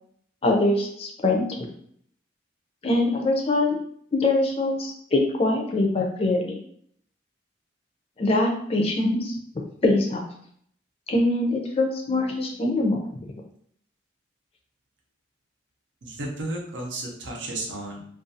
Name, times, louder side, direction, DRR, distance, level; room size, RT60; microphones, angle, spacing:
voice 1, 0.4-1.4 2.8-3.8 4.1-6.6 8.2-9.4 9.8-10.3 11.1-13.1, left 2 dB, 30° left, 1 dB, 0.4 m, -23 dB
voice 2, 16.0-18.0, right 2 dB, 80° right, -1 dB, 0.7 m, -33 dB
2.4 x 2.3 x 2.6 m, 0.65 s
head